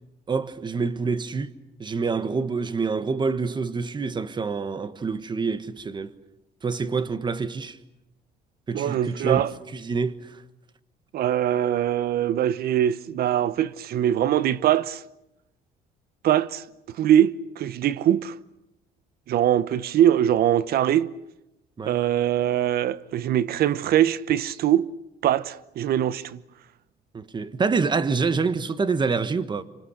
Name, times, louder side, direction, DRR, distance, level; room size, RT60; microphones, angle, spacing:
voice 1, 0.3-1.5 1.8-6.1 6.6-7.8 8.7-9.5 9.7-10.4 21.8-22.0 27.1-29.6, right 4 dB, 25° right, 1.4 m, -26 dB
voice 2, 8.7-9.5 11.1-15.0 16.2-16.6 17.0-18.3 19.3-21.1 21.8-24.9 25.2-26.4, right 11 dB, 65° right, 0.9 m, -22 dB
27.0 x 26.0 x 6.6 m
cardioid pair, 110°, 17 cm